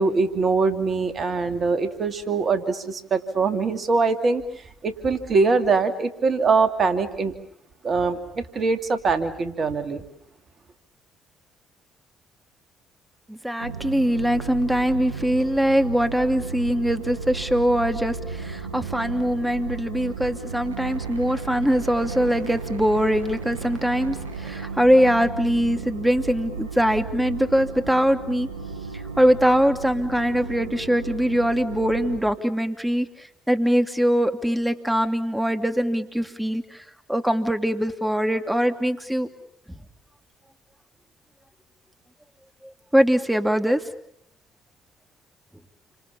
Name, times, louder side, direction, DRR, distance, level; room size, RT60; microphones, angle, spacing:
voice 1, 0.0-4.4 4.8-7.3 7.8-10.0, right 4 dB, 45° right, 9 dB, 2.7 m, -23 dB
voice 2, 13.3-28.5 29.2-33.1 33.5-36.8 37.1-39.3 42.9-43.8, equal, 5° right, 7 dB, 2.7 m, -22 dB
sound 1, 13.6-32.2, right 5 dB, 90° right, 6.1 m, -34 dB
29.5 x 26.5 x 7.1 m, 0.74 s
hypercardioid pair, 50°, 0 cm